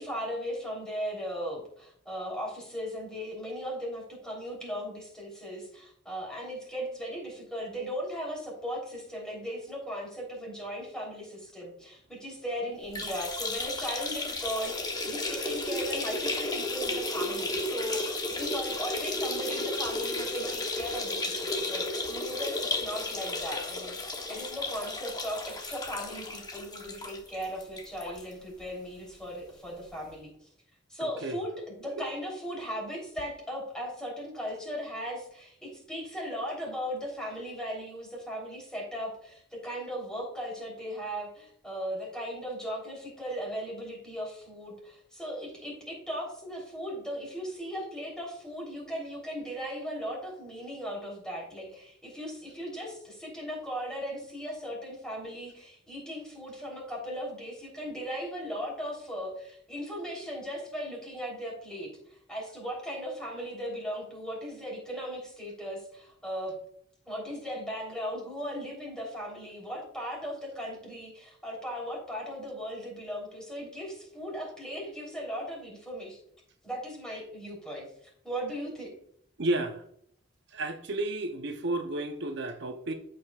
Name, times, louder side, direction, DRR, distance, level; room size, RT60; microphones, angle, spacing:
voice 1, 0.0-30.3 30.9-61.9 62.3-66.5 67.1-76.2 76.6-77.9 78.2-78.9, equal, 5° left, 3.4 m, -37 dB
sound 1, 12.8-28.2 28.6-28.7 29.0-29.1 30.1-30.2, left 2 dB, 20° left, 1.0 m, -33 dB
voice 2, 31.0-31.4 32.0-32.1 79.4-79.8 80.5-82.9, right 2 dB, 65° right, 0.8 m, -32 dB
14.0 x 5.0 x 2.4 m
head